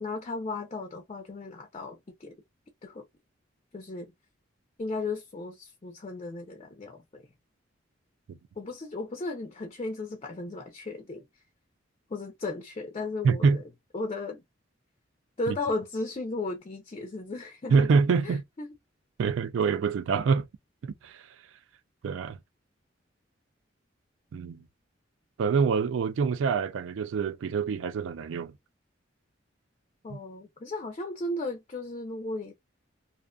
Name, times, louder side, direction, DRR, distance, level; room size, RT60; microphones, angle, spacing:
voice 1, 0.0-2.4 2.8-3.1 3.7-4.1 4.8-7.3 8.6-11.3 12.1-13.6 13.9-14.4 15.4-17.9 18.2-18.7 30.0-32.5, left 2 dB, 30° left, 0.4 m, -35 dB
voice 2, 13.2-13.6 15.5-15.6 17.7-18.4 19.2-20.5 20.8-21.2 22.0-22.4 24.3-24.6 25.4-28.5 30.1-30.2, right 5 dB, 80° right, 0.3 m, -25 dB
2.4 x 2.4 x 2.2 m
head